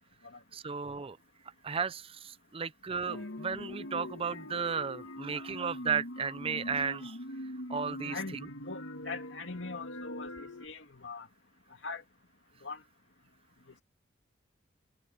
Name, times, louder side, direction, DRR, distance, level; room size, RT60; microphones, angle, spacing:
voice 1, 0.5-1.2 1.6-7.2 7.7-8.2, right 6 dB, 30° right, 0.5 m, -34 dB
sound 1, 3.1-10.7, left 1 dB, 80° left, 1.6 m, -42 dB
voice 2, 8.1-11.3 11.8-12.0 12.6-12.8, left 4 dB, 65° left, 2.6 m, -41 dB
head